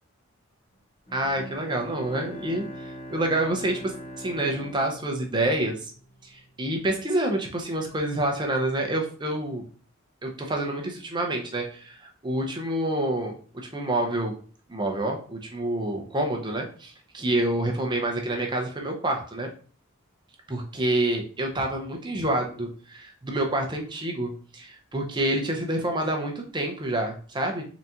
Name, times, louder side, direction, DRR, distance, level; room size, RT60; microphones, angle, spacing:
Bowed string instrument, 1.1-6.0, equal, 25° left, 0.6 m, -41 dB
voice 1, 1.1-5.9 6.2-9.6 10.2-13.4 13.7-14.3 14.7-19.5 20.5-27.7, right 1 dB, 20° right, 2 dB, 0.6 m, -28 dB
4.0 x 3.5 x 2.8 m, 0.42 s
head